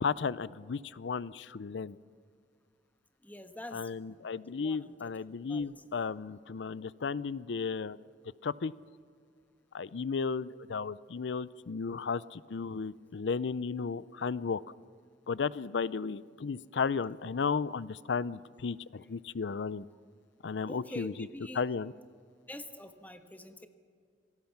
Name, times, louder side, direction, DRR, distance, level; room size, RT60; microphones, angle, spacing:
voice 1, 0.0-2.0 3.7-8.0 8.4-8.7 9.7-14.6 15.3-19.8 20.4-21.1 21.6-21.9, left 5 dB, 90° left, 19 dB, 0.5 m, -34 dB
voice 2, 3.2-4.2 4.6-5.0 5.5-5.7 20.7-21.6 22.5-23.7, left 1 dB, 10° left, 8 dB, 1.3 m, -45 dB
27.0 x 18.5 x 6.0 m, 2.2 s
head